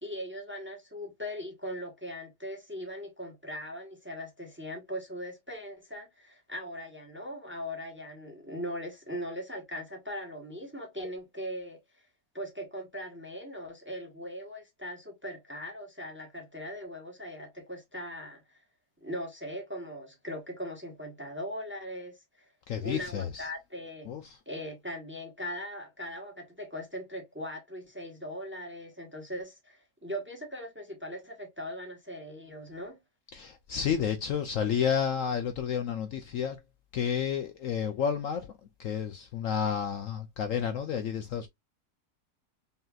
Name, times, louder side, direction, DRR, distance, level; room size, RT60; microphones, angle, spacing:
voice 1, 0.0-11.8 12.3-18.4 19.0-22.1 22.8-24.1 24.5-33.0, equal, 10° right, 1.0 m, -40 dB
voice 2, 22.7-23.5 24.1-24.4 33.3-36.6 36.9-38.5 38.8-41.5, left 8 dB, 65° left, 0.9 m, -31 dB
5.5 x 2.8 x 2.4 m
omnidirectional pair, 1.7 m